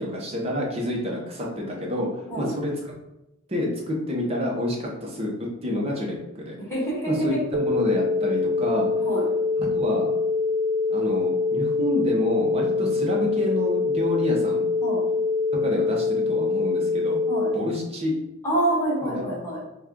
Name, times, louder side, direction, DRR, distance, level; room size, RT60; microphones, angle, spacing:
voice 1, 0.0-2.7 3.5-5.3 5.6-6.6 7.1-8.9 9.6-10.1 10.9-14.7 15.6-17.2 17.5-18.1 19.0-19.2, left 1 dB, 30° right, -2 dB, 0.8 m, -28 dB
voice 2, 6.6-7.4 9.0-9.2 14.8-15.0 17.3-17.5 18.4-19.6, right 1 dB, 10° left, -5 dB, 1.4 m, -26 dB
sound 1, 7.5-17.5, left 4 dB, 55° right, 0.5 m, -24 dB
4.2 x 2.3 x 3.6 m, 0.90 s
head